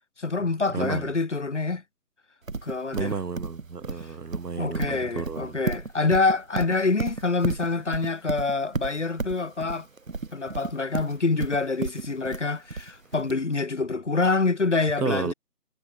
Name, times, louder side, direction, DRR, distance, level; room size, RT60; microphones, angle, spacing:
voice 1, 0.2-1.8 2.6-3.1 4.0-4.1 4.6-9.9 10.3-15.3, left 3 dB, 50° left, 3.8 m, -26 dB
voice 2, 0.7-1.1 2.9-5.6 15.0-15.3, right 5 dB, 80° right, 1.6 m, -31 dB
Livestock farm animals working animals, 2.5-13.3, right 3 dB, 55° right, 2.9 m, -32 dB
sound 1, 4.0-13.6, left 8 dB, 5° left, 6.7 m, -67 dB
figure-of-eight pair, 180°, 47 cm